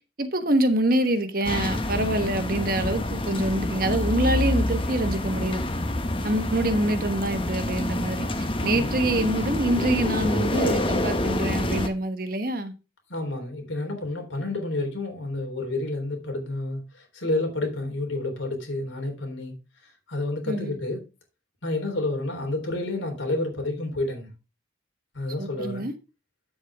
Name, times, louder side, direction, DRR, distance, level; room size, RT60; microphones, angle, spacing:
voice 1, 0.2-5.6 6.2-8.3 8.6-12.7 20.5-20.7 25.4-25.9, right 1 dB, 50° right, 1.2 m, -25 dB
sound 1, 1.4-11.9, left 1 dB, 25° left, 1.0 m, -27 dB
voice 2, 8.4-9.1 13.1-19.5 19.8-21.0 21.6-24.3 25.1-25.9, left 2 dB, 90° left, 3.7 m, -30 dB
8.7 x 7.8 x 3.5 m
head